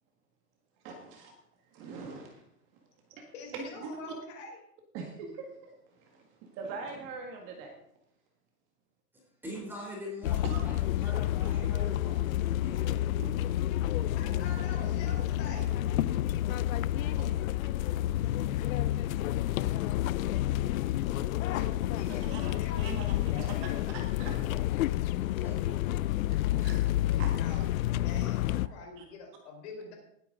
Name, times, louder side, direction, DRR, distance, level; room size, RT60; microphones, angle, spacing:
voice 1, 0.8-1.3 1.7-2.4 3.1-4.1 4.9-6.2 6.5-7.7 10.4-10.7 11.6-11.8 13.2-13.5 15.9-16.0 22.2-23.5 23.9-24.4 26.6-27.3 28.5-28.6 29.0-29.1, right 4 dB, 30° right, 2 dB, 1.7 m, -42 dB
voice 2, 3.3-4.6 14.2-15.8 21.5-24.0 27.4-29.9, left 3 dB, 50° left, 1 dB, 4.6 m, -45 dB
voice 3, 9.4-13.0 24.2-24.7 25.1-25.7, left 1 dB, 5° right, -3 dB, 3.2 m, -43 dB
sound 1, 10.2-28.7, left 13 dB, 75° left, 0.5 m, -29 dB
19.5 x 9.1 x 3.8 m, 0.71 s
supercardioid pair, 170°, 42 cm